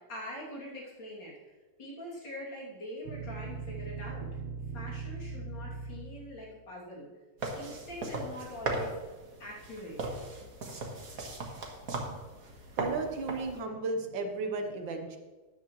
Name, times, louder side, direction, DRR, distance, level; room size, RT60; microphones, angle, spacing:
voice 1, 0.0-1.3 1.8-4.3 4.7-7.1 7.5-9.0 9.4-10.1 10.9-11.0, left 1 dB, 65° left, -5 dB, 3.5 m, -43 dB
sound 1, 3.1-6.5, right 4 dB, 85° right, 1.8 m, -40 dB
sound 2, 7.4-13.6, right 2 dB, 50° right, 1.8 m, -38 dB
voice 2, 12.8-15.2, right 3 dB, 70° right, 5 dB, 1.7 m, -34 dB
13.0 x 9.5 x 3.1 m, 1.3 s
omnidirectional pair, 2.2 m